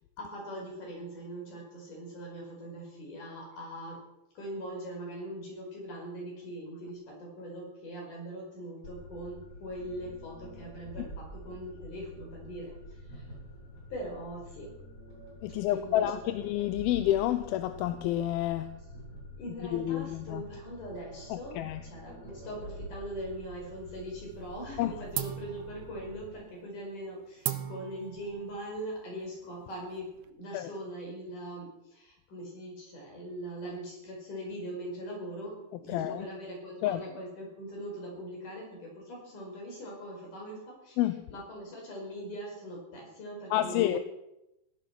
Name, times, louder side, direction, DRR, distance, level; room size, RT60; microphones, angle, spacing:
voice 1, 0.2-4.0 4.4-12.7 13.1-13.2 13.9-14.7 15.7-16.0 19.4-30.1 30.4-41.0 41.3-44.0, equal, 60° left, 6.9 m, -41 dB
sound 1, 8.8-26.3, equal, 40° left, 8.8 m, -47 dB
voice 2, 15.4-18.8 19.7-20.4 21.3-21.8 24.8-24.9 30.5-30.7 35.9-36.3 36.8-37.0 41.0-41.3 43.5-44.0, left 13 dB, 85° left, 2.6 m, -29 dB
sound 2, 23.2-24.1 24.4-24.8 25.1-30.3, right 12 dB, 70° right, 1.9 m, -40 dB
16.5 x 13.0 x 6.1 m
omnidirectional pair, 4.2 m